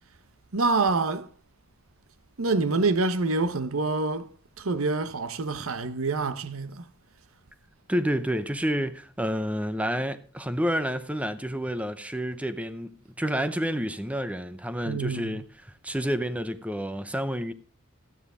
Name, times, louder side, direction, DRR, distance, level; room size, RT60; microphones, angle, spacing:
voice 1, 0.5-1.3 2.4-4.3 4.6-6.9 14.8-15.4, right 3 dB, 85° right, 0.9 m, -26 dB
voice 2, 7.9-15.5 15.8-17.5, equal, 5° right, 0.7 m, -29 dB
13.0 x 9.3 x 5.0 m
head